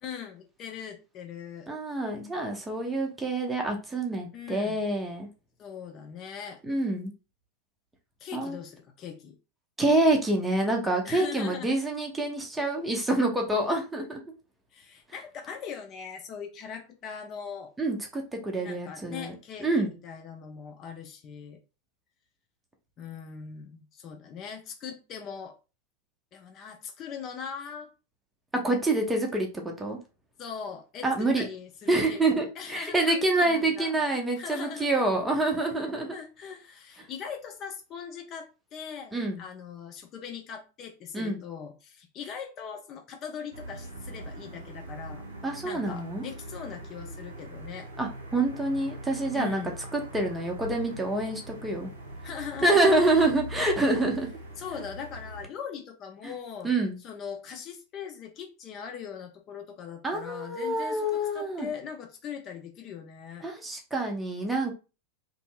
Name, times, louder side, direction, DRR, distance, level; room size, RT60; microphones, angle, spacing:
voice 1, 0.0-1.7 4.3-4.8 5.6-6.6 8.2-9.4 11.0-11.8 14.7-17.7 18.6-21.6 23.0-25.6 26.3-27.9 30.4-35.1 36.1-45.3 45.6-47.9 49.3-49.7 52.2-53.0 54.6-56.7 57.0-63.5, left 7 dB, 35° left, 4 dB, 0.5 m, -40 dB
voice 2, 1.7-5.3 6.6-7.1 8.3-8.6 9.8-14.2 17.8-19.3 19.6-19.9 28.5-30.0 31.0-31.5 31.9-36.1 39.1-39.4 41.1-41.4 45.4-46.3 48.0-49.6 49.9-51.9 52.6-54.3 56.6-57.0 60.0-61.7 63.4-64.7, right 2 dB, 10° right, 1 dB, 0.7 m, -27 dB
sound 1, 43.5-55.5, right 1 dB, 65° right, 0.8 m, -42 dB
2.6 x 2.6 x 2.2 m, 0.31 s
figure-of-eight pair, 90°, 0 cm